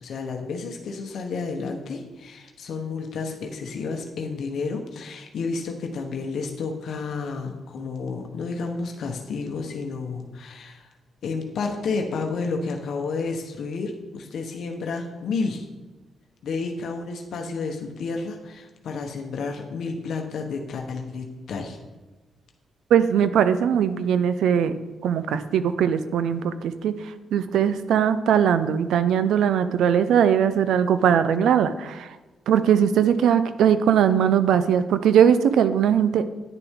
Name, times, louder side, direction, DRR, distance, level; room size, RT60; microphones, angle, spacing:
voice 1, 0.0-10.9 11.2-15.6 16.4-21.8, left 4 dB, 70° left, 3 dB, 1.0 m, -31 dB
voice 2, 22.9-24.8 25.0-32.2 32.5-36.2, right 8 dB, 90° right, 12 dB, 0.5 m, -20 dB
10.0 x 6.8 x 3.6 m, 1.2 s
cardioid pair, 100°, 0 cm